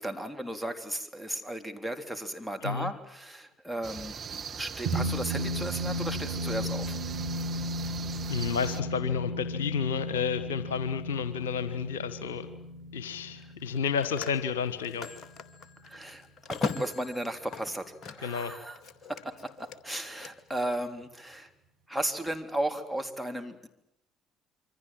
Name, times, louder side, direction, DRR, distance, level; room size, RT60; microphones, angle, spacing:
voice 1, 0.0-7.0 15.8-18.8 19.1-21.5 21.9-23.7, right 1 dB, ahead, 9 dB, 3.6 m, -35 dB
sound 1, 3.8-8.8, right 7 dB, 45° right, 2.1 m, -40 dB
sound 2, 4.9-15.5, equal, 70° right, 4.2 m, -35 dB
voice 2, 8.3-12.5 12.9-15.1 18.2-18.5, left 6 dB, 75° left, 13 dB, 1.4 m, -31 dB
Telephone, 11.4-11.6 13.6-18.4 18.7-20.3, left 4 dB, 45° left, 2.2 m, -40 dB
27.5 x 24.5 x 7.7 m, 0.81 s
figure-of-eight pair, 50°, 0 cm